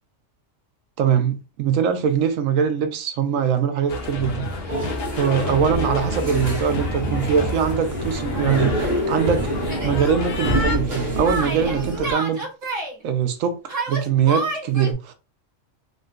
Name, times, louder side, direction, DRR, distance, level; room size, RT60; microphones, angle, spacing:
voice 1, 1.0-4.5 5.1-9.5 9.8-12.4 13.0-13.6 13.9-15.1, right 7 dB, 90° right, 1.0 m, -22 dB
sound 1, 3.9-10.8, left 2 dB, 60° left, 0.7 m, -29 dB
sound 2, 4.7-12.1, equal, 25° right, 0.8 m, -27 dB
Yell, 9.7-10.0 11.2-12.9 13.7-14.9, right 2 dB, 70° right, 1.4 m, -28 dB
3.6 x 2.2 x 2.4 m
omnidirectional pair, 1.3 m